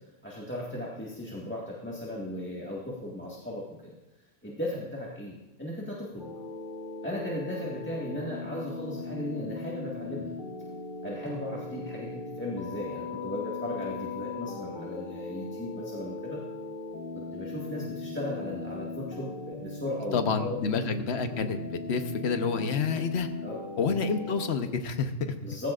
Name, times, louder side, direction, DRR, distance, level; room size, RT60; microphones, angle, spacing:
voice 1, 0.2-3.9 4.4-6.3 7.0-10.4 11.0-16.4 17.1-20.6 23.4-23.6 25.4-25.7, left 1 dB, 10° left, -5 dB, 1.6 m, -36 dB
sound 1, 6.2-24.5, left 3 dB, 45° left, 1.3 m, -39 dB
voice 2, 20.1-23.3 23.8-25.3, left 5 dB, 60° left, 7 dB, 1.2 m, -29 dB
17.0 x 15.5 x 2.5 m, 1.0 s
omnidirectional pair, 1.3 m